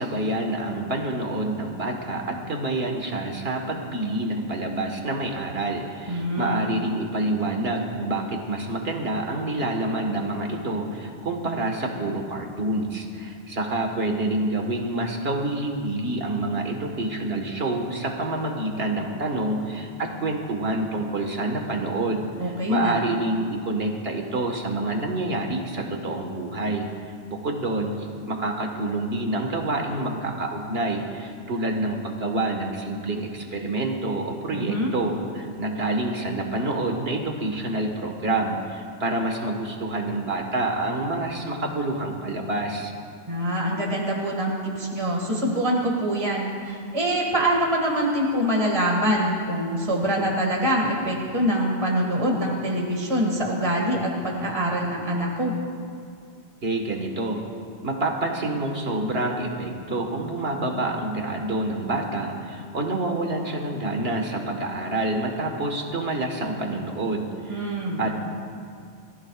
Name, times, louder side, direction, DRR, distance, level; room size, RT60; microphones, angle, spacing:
voice 1, 0.0-26.9 27.3-42.9 56.6-57.4 57.8-68.2, right 2 dB, 60° right, 2 dB, 1.8 m, -27 dB
voice 2, 6.1-6.7 22.4-23.0 34.5-34.9 43.3-55.5 67.5-68.1, equal, 30° right, -2 dB, 2.1 m, -24 dB
23.5 x 15.0 x 2.4 m, 2.3 s
omnidirectional pair, 1.2 m